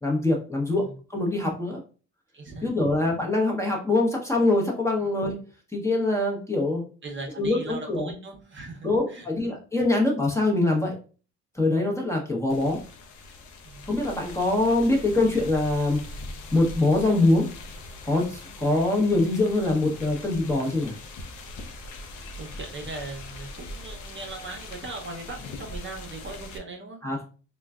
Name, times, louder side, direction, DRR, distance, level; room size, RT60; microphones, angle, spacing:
voice 1, 0.0-1.8 2.6-5.4 5.7-6.8 7.4-8.1 8.8-10.9 11.5-12.8 13.9-16.0 16.5-17.5 18.0-20.9 27.0-27.2, left 2 dB, 10° left, -1 dB, 0.9 m, -24 dB
voice 2, 2.3-2.9 7.0-9.3 11.6-11.9 13.6-13.9 22.3-27.0, right 3 dB, 40° right, 2 dB, 0.8 m, -39 dB
sound 1, 12.5-26.6, left 2 dB, 80° left, 0.6 m, -41 dB
3.8 x 2.2 x 2.3 m, 0.37 s
cardioid pair, 90°, 30 cm